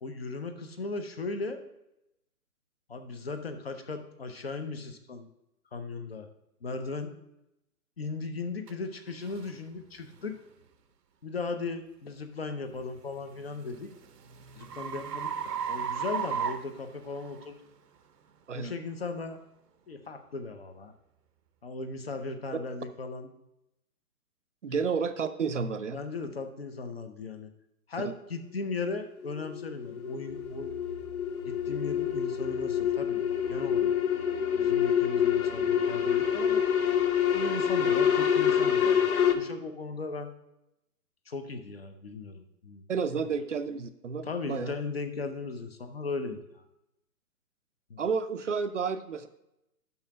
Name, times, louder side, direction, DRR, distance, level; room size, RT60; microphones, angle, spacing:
voice 1, 0.0-1.6 2.9-5.3 5.7-6.3 6.6-7.1 8.0-10.4 11.2-13.9 14.6-17.6 18.5-19.4 19.9-20.9 21.6-23.3 24.7-24.8 25.9-27.5 27.9-30.8 31.4-33.9 34.6-36.6 37.3-40.3 41.3-42.8 44.3-46.6 47.9-48.0, left 3 dB, 40° left, 7 dB, 0.6 m, -37 dB
sound 1, 8.7-8.8 9.3-9.5 10.1-10.4 13.0-17.5, right 7 dB, 90° right, 0.8 m, -35 dB
voice 2, 24.6-26.0 28.0-28.1 42.9-44.7 48.0-49.3, right 5 dB, 50° right, 10 dB, 0.5 m, -31 dB
sound 2, 28.8-39.3, left 8 dB, 65° left, 0.9 m, -27 dB
sound 3, 30.3-38.1, right 3 dB, 80° left, 1.4 m, -52 dB
5.8 x 5.6 x 5.2 m, 0.87 s
hypercardioid pair, 165°, 46 cm